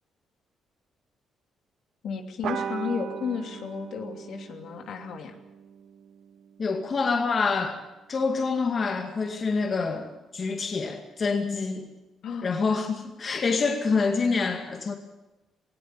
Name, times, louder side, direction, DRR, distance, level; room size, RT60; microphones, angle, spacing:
voice 1, 2.0-5.4 12.2-12.6, left 6 dB, 70° left, 4 dB, 2.8 m, -33 dB
sound 1, 2.4-7.3, right 8 dB, 75° right, 1.7 m, -38 dB
voice 2, 6.6-7.8 8.1-11.9 12.4-15.0, left 4 dB, 40° left, 4 dB, 2.2 m, -26 dB
19.0 x 16.5 x 9.7 m, 1.0 s
cardioid pair, 90°, 0 cm